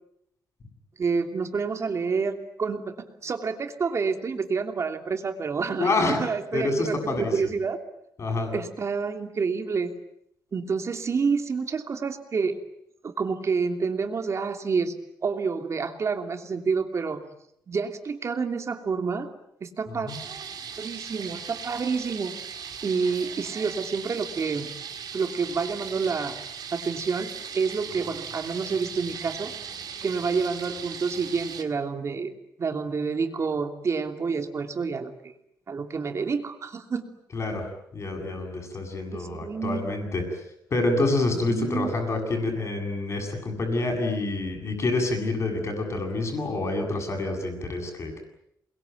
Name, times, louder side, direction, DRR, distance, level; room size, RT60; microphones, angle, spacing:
voice 1, 1.0-2.9 3.2-7.8 8.5-9.9 10.5-12.6 13.0-14.9 15.2-17.3 17.7-19.3 19.6-20.1 20.8-22.3 22.8-24.7 25.1-26.4 26.7-29.5 30.0-32.3 32.6-35.3 35.7-37.0 39.1-39.8 41.5-41.9, right 5 dB, 45° right, 6 dB, 3.0 m, -28 dB
voice 2, 5.8-6.2 6.5-7.5 8.2-8.5 19.9-20.2 37.3-37.7 37.9-40.4 40.7-48.2, left 2 dB, 40° left, 4 dB, 7.9 m, -27 dB
sound 1, 20.1-31.6, right 7 dB, 70° right, 5.0 m, -38 dB
28.5 x 22.0 x 9.4 m, 0.75 s
wide cardioid pair, 145°, 7 cm